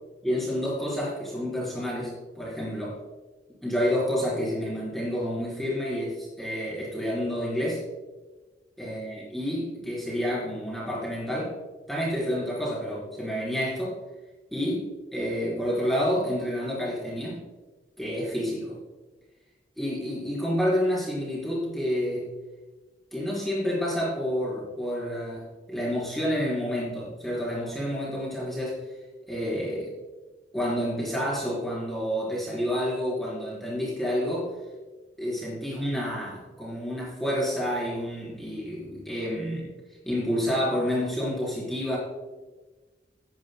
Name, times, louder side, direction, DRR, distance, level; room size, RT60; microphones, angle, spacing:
voice 1, 0.2-3.0 3.6-7.8 8.8-11.5 11.9-14.0 14.5-17.4 18.0-18.8 19.8-22.3 23.1-28.8 29.3-29.9 30.5-34.5 35.2-39.7 40.0-42.0, equal, ahead, -6 dB, 4.0 m, -29 dB
17.0 x 10.5 x 2.2 m, 1.2 s
head